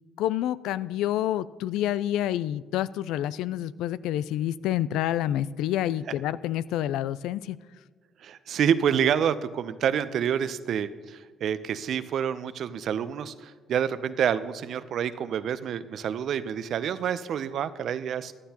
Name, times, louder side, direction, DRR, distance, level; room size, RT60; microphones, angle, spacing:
voice 1, 0.2-7.6, left 12 dB, 75° left, 17 dB, 0.3 m, -28 dB
voice 2, 8.2-18.3, right 8 dB, 65° right, 14 dB, 0.6 m, -28 dB
15.0 x 11.5 x 2.9 m, 1.4 s
supercardioid pair, 65°, 0 cm